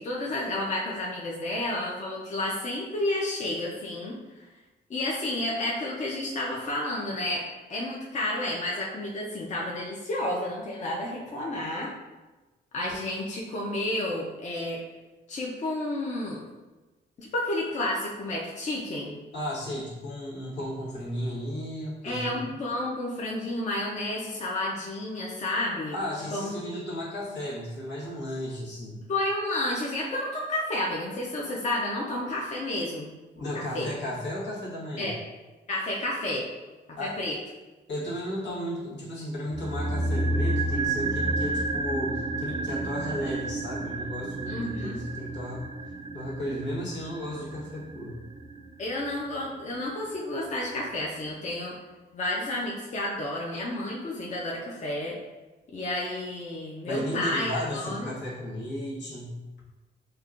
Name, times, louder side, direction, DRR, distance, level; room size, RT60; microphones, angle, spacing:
voice 1, 0.0-4.4 4.9-7.4 7.7-11.9 12.7-14.8 15.3-16.4 17.2-19.2 22.0-26.0 26.3-26.5 29.1-33.1 33.5-33.9 35.0-35.1 35.7-36.5 36.9-37.3 44.5-45.0 48.8-51.8 52.1-55.2 55.7-58.1, left 1 dB, 40° left, -3 dB, 0.6 m, -31 dB
voice 2, 19.3-22.4 25.9-29.0 33.4-35.1 37.0-37.3 37.9-45.6 46.1-48.2 56.9-59.4, equal, 80° left, -6 dB, 1.3 m, -34 dB
sound 1, 39.5-49.8 50.0-50.1, right 2 dB, 25° right, 0.4 m, -31 dB
5.2 x 2.2 x 2.4 m, 1.1 s
cardioid pair, 105°, 18 cm